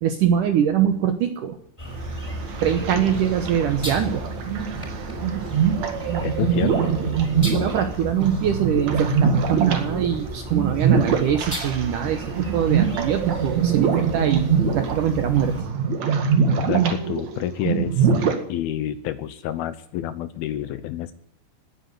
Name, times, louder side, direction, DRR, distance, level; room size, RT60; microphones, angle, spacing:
voice 1, 0.0-1.6 2.6-4.2 7.5-15.6, right 9 dB, 80° right, 8 dB, 1.9 m, -23 dB
sound 1, 1.8-15.6, equal, 5° left, 4.4 m, -35 dB
sound 2, 1.9-18.4, right 6 dB, 50° right, 2.4 m, -23 dB
voice 2, 6.2-6.9 16.7-18.1 18.5-21.1, left 12 dB, 80° left, 13 dB, 2.2 m, -28 dB
18.5 x 9.6 x 8.0 m, 0.64 s
omnidirectional pair, 5.3 m